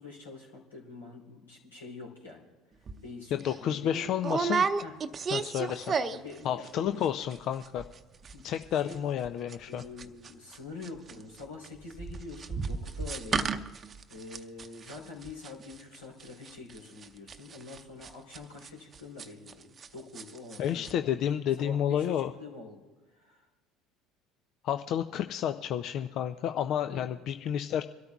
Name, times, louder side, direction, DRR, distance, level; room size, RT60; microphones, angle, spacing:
voice 1, 0.0-2.5 3.0-4.1 4.8-5.0 6.1-7.1 8.3-9.0 9.7-13.5 14.1-21.2 21.6-22.8 23.1-23.5 26.9-27.0, left 3 dB, 90° left, -2 dB, 3.6 m, -45 dB
sound 1, 2.9-3.0 3.4-3.6 4.2-6.4 6.6-7.1 7.3-7.4 7.6-8.0 8.2-19.9 20.1-20.6 20.8-20.9, right 5 dB, 35° right, 0.7 m, -33 dB
voice 2, 3.3-4.7 5.3-5.9 6.4-7.8 8.4-9.8 20.6-22.3 24.6-27.8, left 10 dB, 55° left, 9 dB, 0.5 m, -30 dB
25.5 x 13.0 x 2.4 m, 1.2 s
hypercardioid pair, 65°, 0 cm